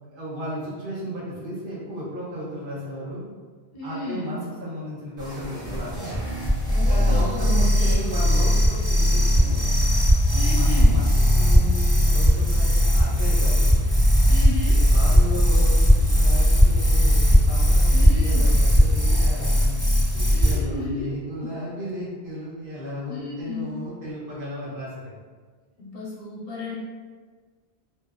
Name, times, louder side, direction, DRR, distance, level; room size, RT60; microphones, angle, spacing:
voice 1, 0.1-3.3 3.8-6.3 6.9-9.9 10.5-13.8 14.9-19.8 20.1-25.1, equal, 60° right, -7 dB, 0.9 m, -34 dB
voice 2, 3.7-4.3 6.6-8.1 10.3-11.0 14.3-14.8 17.9-18.5 20.3-21.1 21.4-21.5 23.1-23.7 25.8-26.7, left 3 dB, 70° left, -6 dB, 0.9 m, -34 dB
sound 1, 5.2-20.6, equal, 5° right, 0.7 m, -18 dB
2.6 x 2.0 x 2.3 m, 1.5 s
omnidirectional pair, 1.0 m